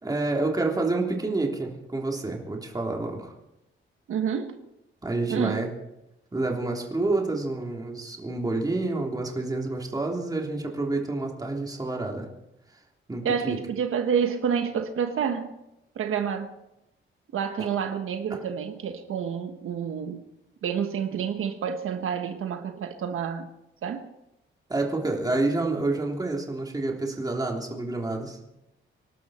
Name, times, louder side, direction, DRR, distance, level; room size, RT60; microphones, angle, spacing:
voice 1, 0.0-3.3 5.0-5.7 6.3-12.3 13.1-13.6 24.7-28.4, right 2 dB, 20° right, 3.4 m, -28 dB
voice 2, 4.1-4.6 5.3-5.7 13.2-15.6 15.9-16.6 17.3-20.3 20.6-23.5 23.8-24.1, right 7 dB, 80° right, 1.4 m, -29 dB
26.0 x 12.0 x 4.4 m
cardioid pair, 125°, 21 cm